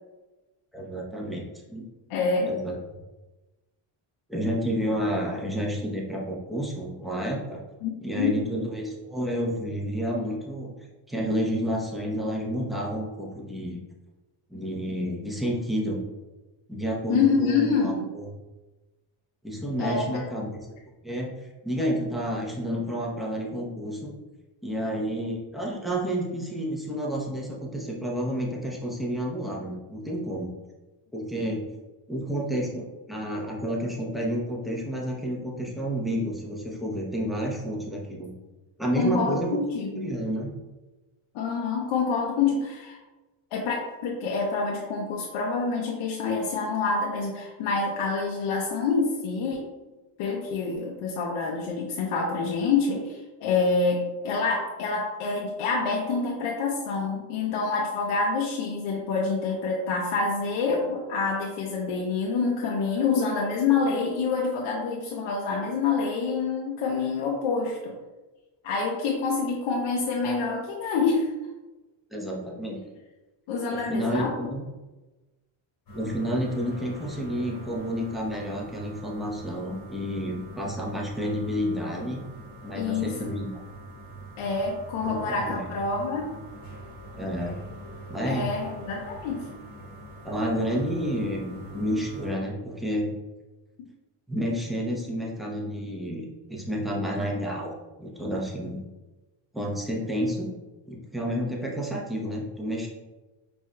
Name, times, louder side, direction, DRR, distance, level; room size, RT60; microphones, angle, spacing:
voice 1, 0.7-1.9 2.4-2.7 4.3-7.6 8.0-10.7 11.1-13.8 14.5-16.0 16.7-18.2 19.4-20.6 21.0-21.3 21.6-24.1 24.6-30.5 31.1-31.7 32.1-38.3 38.8-39.6 40.0-40.5 72.1-72.8 73.7-74.6 75.9-82.2 82.6-83.6 85.0-85.6 87.2-87.6 88.1-88.5 90.2-93.1 94.3-98.8 99.5-100.5 100.9-102.9, equal, ahead, -4 dB, 0.7 m, -30 dB
voice 2, 2.1-2.5 7.8-8.4 17.1-18.1 19.8-20.2 24.7-25.0 38.9-40.1 41.3-43.0 43.5-49.6 50.2-67.9 68.6-71.3 73.5-74.3 82.8-83.3 84.4-86.3 88.2-89.5 93.8-93.9, left 4 dB, 80° left, -1 dB, 0.7 m, -27 dB
sound 1, 75.9-92.3, right 1 dB, 45° left, 1.1 m, -43 dB
4.6 x 2.6 x 2.2 m, 1.1 s
cardioid pair, 95°, 50 cm